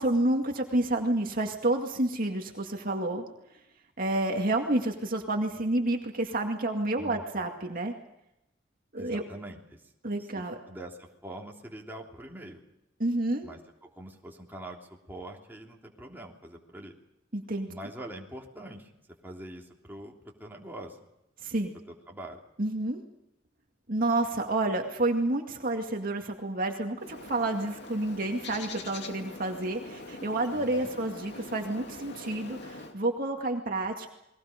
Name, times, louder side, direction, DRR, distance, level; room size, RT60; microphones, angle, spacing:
voice 1, 0.0-3.2 4.0-7.9 8.9-9.2 10.0-10.6 13.0-13.5 17.3-17.7 21.4-21.8 22.6-23.0 23.9-34.1, right 2 dB, 50° right, 2 dB, 2.2 m, -29 dB
voice 2, 7.0-7.5 9.0-9.8 10.3-12.6 13.4-14.8 15.1-16.9 17.7-18.9 19.2-21.0 22.1-22.4 30.5-30.9 33.8-33.9, right 1 dB, 10° right, -1 dB, 3.2 m, -44 dB
Bird, 27.0-32.9, left 2 dB, 60° left, 2.4 m, -43 dB
30.0 x 22.0 x 5.2 m, 0.86 s
head